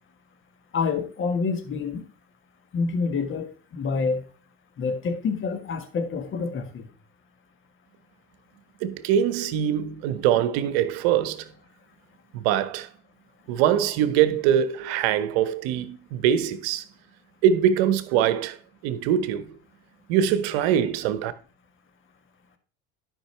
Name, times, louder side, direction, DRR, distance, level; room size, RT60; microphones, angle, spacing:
voice 1, 0.7-2.0 2.7-4.2 4.8-6.9, left 4 dB, 40° left, 1.6 m, -27 dB
voice 2, 8.8-11.5 12.3-12.9 13.5-16.8 17.4-18.6 18.8-19.5 20.1-21.3, right 9 dB, 75° right, 0.9 m, -23 dB
11.5 x 5.3 x 3.3 m
hypercardioid pair, 85°, 31 cm